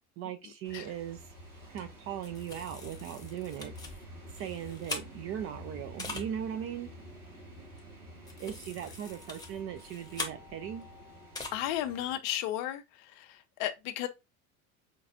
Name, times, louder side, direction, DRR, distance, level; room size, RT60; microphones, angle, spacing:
voice 1, 0.2-1.2 1.7-3.7 4.3-6.9 8.4-10.9, right 10 dB, 30° right, 0.4 m, -39 dB
sound 1, 0.6-12.2, equal, 90° right, 1.4 m, -49 dB
sound 2, 1.8-1.9 2.2-5.5 6.0-6.3 7.8-7.9 8.2-10.8 11.3-11.5, left 3 dB, 10° left, 0.9 m, -42 dB
voice 2, 11.5-12.8 13.2-14.1, left 12 dB, 45° left, 0.6 m, -33 dB
5.2 x 2.3 x 2.5 m
figure-of-eight pair, 75°, 45 cm